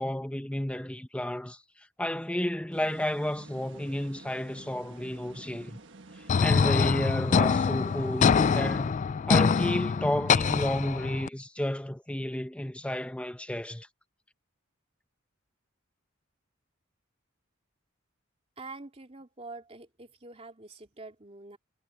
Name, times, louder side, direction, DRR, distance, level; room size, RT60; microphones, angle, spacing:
voice 1, 0.0-5.8 6.4-9.0 9.3-13.9, left 1 dB, 5° left, 0.8 m, -31 dB
sound 1, 2.7-9.3, right 2 dB, 60° right, 1.5 m, -51 dB
sound 2, 6.3-11.3, left 6 dB, 35° left, 0.3 m, -24 dB
voice 2, 18.6-21.6, right 3 dB, 30° right, 2.5 m, -45 dB
head